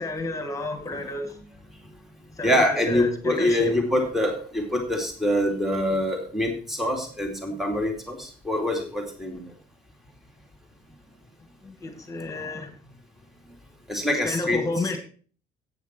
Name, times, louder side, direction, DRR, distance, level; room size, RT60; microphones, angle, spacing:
voice 1, 0.0-1.4 2.4-3.7 11.6-12.7 14.2-15.0, left 2 dB, 20° left, 2.1 m, -31 dB
voice 2, 2.4-9.4 13.9-14.6, left 1 dB, ahead, 2.5 m, -25 dB
11.5 x 9.1 x 4.5 m
cardioid pair, 125°, 17 cm